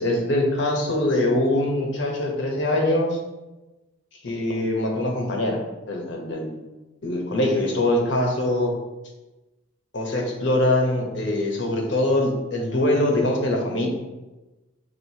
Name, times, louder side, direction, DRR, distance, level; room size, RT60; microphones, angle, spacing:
voice 1, 0.0-3.2 4.2-5.6 5.9-6.6 7.0-8.7 9.9-13.9, left 1 dB, 70° left, 1 dB, 0.8 m, -23 dB
6.1 x 2.5 x 2.7 m, 1.1 s
head